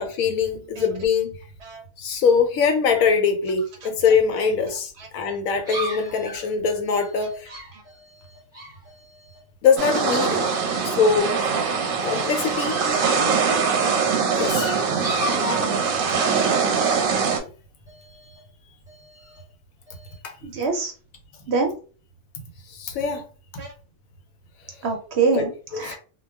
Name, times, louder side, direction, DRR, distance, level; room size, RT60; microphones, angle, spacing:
voice 1, 0.0-1.4 2.0-7.5 9.6-10.4 10.8-11.4 12.0-12.7 14.3-14.7 22.7-23.2 25.3-25.4 25.7-26.0, left 5 dB, 80° left, 1.1 m, -22 dB
sound 1, 5.6-9.4 9.7-10.6 10.9-11.4 11.9-13.5 13.9-16.4 16.9-17.4 17.9-18.4 18.9-19.4 19.9-20.2, left 1 dB, 5° right, 0.7 m, -37 dB
sound 2, 9.8-17.4, right 5 dB, 90° right, 1.1 m, -22 dB
voice 2, 20.4-20.9 21.5-21.7 23.6-23.7 24.8-25.5 25.8-26.0, right 4 dB, 60° right, 0.8 m, -24 dB
2.3 x 2.2 x 3.4 m
omnidirectional pair, 1.4 m